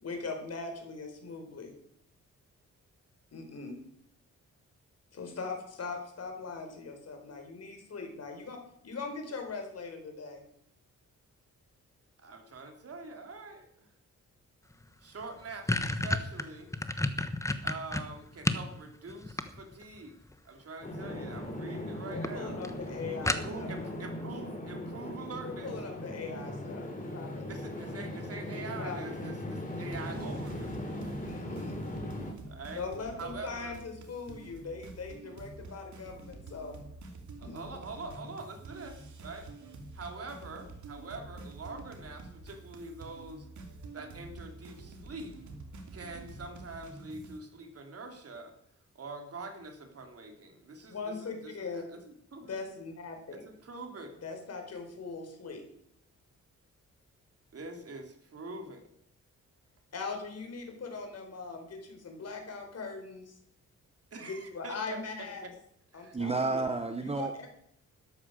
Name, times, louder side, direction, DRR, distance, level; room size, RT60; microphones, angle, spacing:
voice 1, 0.0-1.7 3.3-3.8 5.1-8.6 8.8-10.4 22.1-23.8 25.4-27.4 28.8-29.2 31.2-31.8 32.8-36.8 37.4-37.6 50.9-51.8 52.4-53.4 54.2-55.6 59.9-63.3 64.2-65.4 65.9-66.7 67.0-67.5, left 4 dB, 55° left, 4 dB, 4.3 m, -40 dB
voice 2, 12.2-13.9 15.0-16.7 17.6-20.1 20.4-22.6 23.2-25.8 27.5-31.3 32.5-32.9 33.2-33.8 37.4-39.5 39.9-43.5 43.9-45.3 45.9-48.5 48.9-52.6 53.3-54.2 57.5-58.9 64.1-65.0 65.4-65.5 65.9-66.1, right 3 dB, 50° right, 4 dB, 3.2 m, -44 dB
sound 1, 14.8-14.9 15.2-18.7 19.1-20.0 21.1-21.5 21.8-21.9 22.2-22.3 22.6-22.7 23.3-23.8, left 2 dB, 10° left, 1.1 m, -31 dB
sound 2, 20.8-32.3, left 1 dB, 25° left, 3.8 m, -39 dB
sound 3, 29.9-47.4, right 2 dB, 70° right, 2.7 m, -48 dB
voice 3, 66.1-67.5, right 3 dB, 20° right, 7 dB, 1.0 m, -31 dB
13.0 x 12.0 x 6.5 m, 0.70 s
wide cardioid pair, 125°, 30 cm